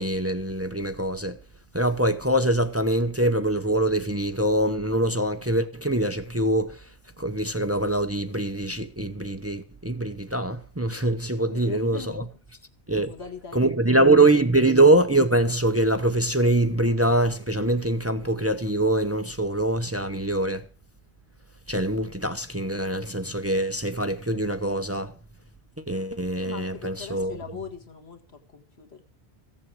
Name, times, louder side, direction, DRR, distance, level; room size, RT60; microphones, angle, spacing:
voice 1, 0.0-1.4 1.7-6.9 7.2-12.2 12.9-13.1 13.5-20.6 21.7-25.1 25.9-27.4, right 1 dB, 15° right, 0.7 m, -23 dB
voice 2, 11.4-12.3 13.0-14.3 26.4-29.0, left 6 dB, 90° left, 2.0 m, -41 dB
15.0 x 7.4 x 7.6 m
omnidirectional pair, 1.0 m